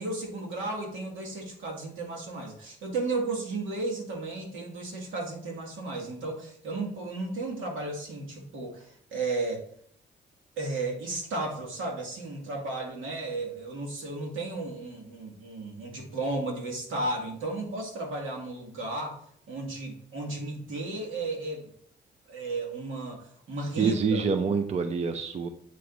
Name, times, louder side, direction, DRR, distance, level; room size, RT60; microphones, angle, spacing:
voice 1, 0.0-9.7 10.6-19.2 19.5-21.7 22.3-24.2, right 2 dB, 80° right, 0 dB, 1.8 m, -34 dB
voice 2, 23.8-25.5, right 5 dB, 35° right, 7 dB, 0.5 m, -26 dB
7.8 x 3.4 x 3.9 m, 0.62 s
cardioid pair, 90°, 20 cm